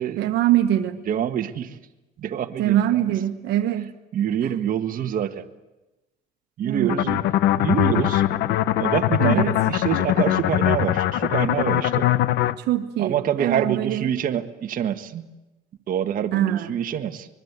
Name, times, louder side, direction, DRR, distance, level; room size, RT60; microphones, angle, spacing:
voice 1, 0.2-1.0 2.6-3.9 4.4-4.5 6.6-7.1 9.2-9.5 12.6-14.1 16.3-16.7, right 12 dB, 80° right, 7 dB, 1.4 m, -23 dB
voice 2, 1.1-1.8 2.2-3.1 4.1-5.4 6.6-7.2 7.6-8.2 8.8-12.1 13.0-15.3 15.9-17.3, right 9 dB, 55° right, 5 dB, 1.6 m, -26 dB
sound 1, 6.9-12.5, left 13 dB, 80° left, 1.0 m, -21 dB
24.5 x 22.0 x 8.3 m, 1.0 s
cardioid pair, 110°, 17 cm